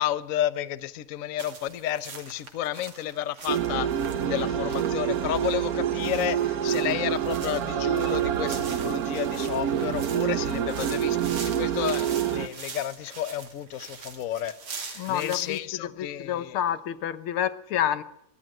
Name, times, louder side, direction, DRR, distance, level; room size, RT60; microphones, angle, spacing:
voice 1, 0.0-3.9 4.2-16.6, left 12 dB, 55° left, 1.0 m, -31 dB
sound 1, 1.4-15.6, right 5 dB, 85° right, 3.5 m, -43 dB
sound 2, 3.5-12.5, right 9 dB, 55° right, 1.2 m, -27 dB
voice 2, 15.0-18.0, left 10 dB, 90° left, 1.9 m, -29 dB
23.5 x 15.0 x 7.7 m
omnidirectional pair, 2.3 m